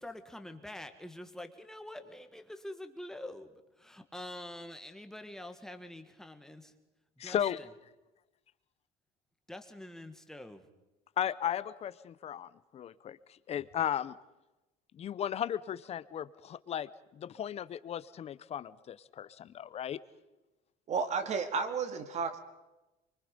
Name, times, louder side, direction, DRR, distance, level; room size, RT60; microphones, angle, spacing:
voice 1, 0.0-6.7 7.2-7.7 9.5-10.6, left 1 dB, 5° left, 6 dB, 1.6 m, -46 dB
voice 2, 7.2-7.6 11.2-13.2 13.5-14.1 14.9-20.0, left 10 dB, 35° left, 17 dB, 0.7 m, -35 dB
voice 3, 20.9-22.4, right 5 dB, 40° right, 8 dB, 2.0 m, -32 dB
24.0 x 24.0 x 5.2 m, 1.0 s
cardioid pair, 145°, 18 cm